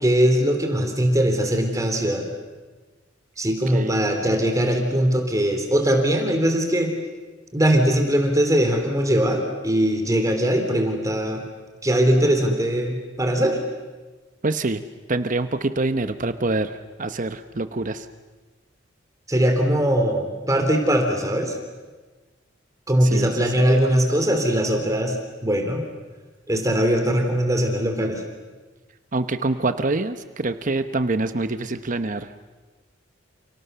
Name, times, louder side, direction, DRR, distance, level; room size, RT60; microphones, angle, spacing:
voice 1, 0.0-2.3 3.4-6.9 7.5-11.4 11.8-13.6 19.3-21.5 22.9-25.2 25.4-25.8 26.5-28.2, equal, 15° right, 4 dB, 3.3 m, -21 dB
voice 2, 3.7-4.0 14.4-14.8 15.1-18.1 23.0-23.6 29.1-32.3, right 2 dB, 40° right, 10 dB, 1.0 m, -25 dB
29.5 x 29.5 x 6.8 m, 1.3 s
head